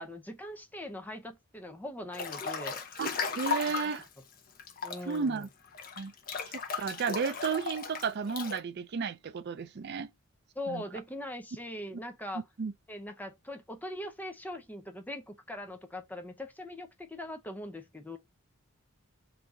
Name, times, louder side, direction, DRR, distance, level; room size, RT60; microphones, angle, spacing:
voice 1, 0.0-2.8 4.8-5.5 10.5-12.4 12.9-18.2, left 1 dB, 10° left, 0.6 m, -41 dB
Breathing / Bathtub (filling or washing) / Splash splatter, 2.1-4.0 4.6-8.6, left 5 dB, 40° left, 0.8 m, -36 dB
voice 2, 3.4-4.1 5.1-5.5 6.0-6.1 6.5-10.1 10.7-10.8 12.6-12.7, right 5 dB, 50° right, 0.4 m, -33 dB
4.0 x 2.8 x 4.7 m
head